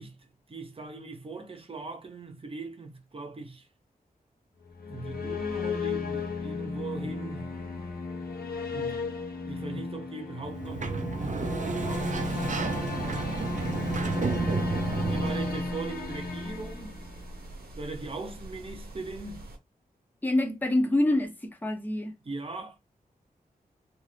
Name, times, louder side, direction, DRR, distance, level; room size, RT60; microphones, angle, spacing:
voice 1, 0.0-3.7 4.8-7.5 8.7-12.4 15.0-17.0 17.8-19.5 22.2-22.8, right 3 dB, 35° right, 0.8 m, -40 dB
sound 1, 4.6-17.5, left 4 dB, 75° left, 0.7 m, -34 dB
Sliding door, 10.4-15.8, right 4 dB, 55° right, 0.5 m, -31 dB
sound 2, 11.9-19.6, right 1 dB, 80° right, 0.8 m, -44 dB
voice 2, 20.2-22.1, left 1 dB, 10° left, 0.7 m, -26 dB
2.6 x 2.5 x 3.3 m
wide cardioid pair, 90°, 16 cm